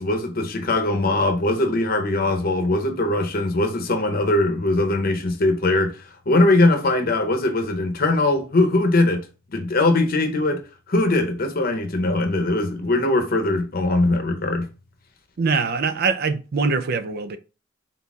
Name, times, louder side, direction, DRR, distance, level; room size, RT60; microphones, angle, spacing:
voice 1, 0.0-6.0 6.3-9.2 9.5-10.6 10.9-14.7, left 2 dB, 50° left, 0.8 m, -21 dB
voice 2, 15.4-17.4, right 4 dB, 50° right, 0.4 m, -23 dB
4.1 x 3.9 x 2.3 m
head